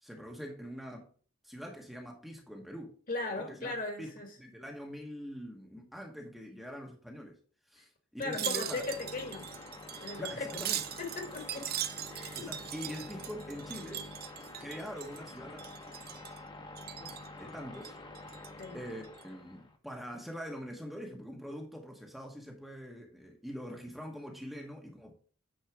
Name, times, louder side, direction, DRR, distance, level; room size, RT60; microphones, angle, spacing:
voice 1, 0.0-1.1 1.4-2.9 3.3-4.1 4.4-7.3 7.7-8.8 10.2-10.8 12.3-14.1 14.6-15.6 17.0-18.0 18.7-25.1, equal, ahead, 1.1 m, -44 dB
voice 2, 3.1-4.3 8.2-9.5 10.0-10.6 11.0-11.7 12.1-12.8 18.6-18.8, left 2 dB, 45° left, 1.8 m, -38 dB
sound 1, 8.2-19.8, left 2 dB, 25° left, 1.1 m, -48 dB
Wind chime, 8.2-15.3 15.6-16.4 16.8-17.3 17.7-18.7 19.0-19.2, right 11 dB, 50° right, 0.6 m, -40 dB
9.1 x 4.1 x 4.8 m
head